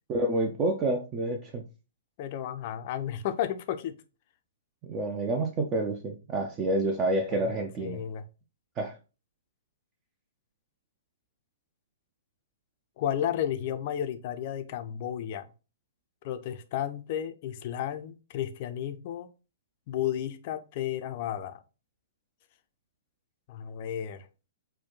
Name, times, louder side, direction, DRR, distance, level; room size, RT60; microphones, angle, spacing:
voice 1, 0.1-1.6 4.8-8.0 8.8-9.0, right 2 dB, 25° right, 0.4 m, -28 dB
voice 2, 2.2-4.0 7.5-8.2 13.0-15.5 16.2-19.3 19.9-21.6 23.5-24.3, left 10 dB, 40° left, 0.4 m, -33 dB
4.3 x 2.2 x 3.7 m
figure-of-eight pair, 115°, 0 cm